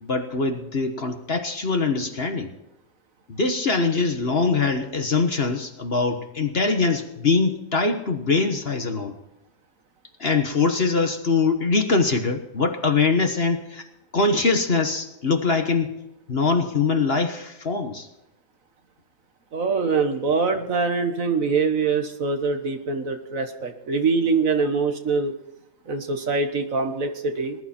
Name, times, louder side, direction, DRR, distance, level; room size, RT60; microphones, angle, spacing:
voice 1, 0.0-2.5 3.3-9.1 10.2-13.8 14.1-15.9 16.3-18.1, left 4 dB, 40° left, 6 dB, 1.4 m, -23 dB
voice 2, 19.5-25.3 25.9-27.6, right 4 dB, 55° right, 6 dB, 1.8 m, -24 dB
20.5 x 11.0 x 4.4 m, 0.90 s
omnidirectional pair, 1.7 m